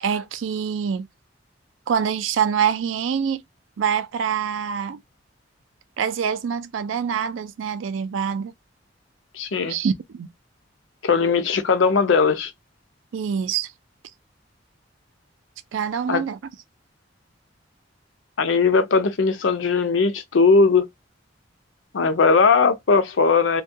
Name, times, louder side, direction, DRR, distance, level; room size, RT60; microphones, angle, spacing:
voice 1, 0.0-1.1 1.9-3.4 3.8-5.0 6.0-8.5 9.7-10.3 13.1-13.7 15.7-16.4, right 7 dB, 80° right, 0.4 m, -25 dB
voice 2, 9.3-9.8 11.0-12.5 16.1-16.2 18.4-20.9 21.9-23.6, left 4 dB, 75° left, 0.5 m, -19 dB
2.3 x 2.2 x 2.6 m
head